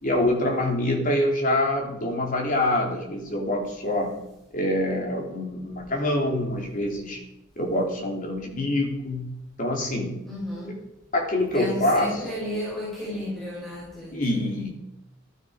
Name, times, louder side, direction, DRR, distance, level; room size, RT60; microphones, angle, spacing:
voice 1, 0.0-4.2 4.5-7.2 7.6-10.1 10.5-10.6 11.1-12.4 14.1-14.7, left 1 dB, 45° left, 1 dB, 3.1 m, -25 dB
voice 2, 10.2-10.8 11.5-14.6, left 1 dB, ahead, -7 dB, 5.0 m, -33 dB
14.0 x 12.5 x 5.0 m, 0.89 s
head